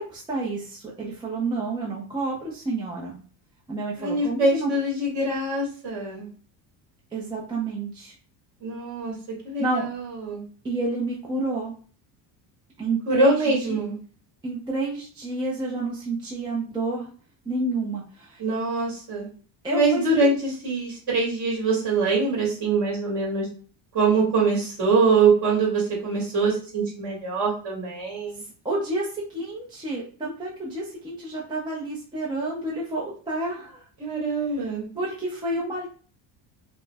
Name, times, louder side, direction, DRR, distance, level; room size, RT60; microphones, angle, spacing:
voice 1, 0.0-3.2 3.7-4.7 7.1-8.1 9.6-9.9 10.6-11.7 12.8-13.8 14.4-17.1 17.5-18.4 19.6-20.3 28.6-33.9 34.6-35.9, right 2 dB, 10° right, -4 dB, 0.4 m, -29 dB
voice 2, 4.0-6.3 8.6-9.1 9.4-10.4 13.1-14.0 18.4-19.3 19.7-23.5 23.9-28.4 34.0-34.9, right 3 dB, 40° right, -2 dB, 1.7 m, -23 dB
5.2 x 2.1 x 2.3 m, 0.41 s
cardioid pair, 165°, 47 cm